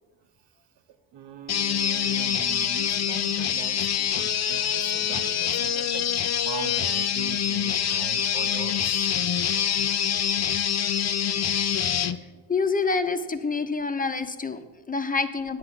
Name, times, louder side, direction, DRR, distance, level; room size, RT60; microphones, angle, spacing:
voice 1, 1.1-9.2 11.9-12.4 14.6-14.7 15.0-15.1, right 8 dB, 75° right, 8 dB, 1.0 m, -42 dB
sound 1, 1.5-12.2, left 8 dB, 40° left, 0.6 m, -25 dB
voice 2, 12.5-15.6, left 4 dB, 20° left, 9 dB, 1.0 m, -27 dB
9.6 x 8.2 x 5.8 m, 1.3 s
supercardioid pair, 65°, 43 cm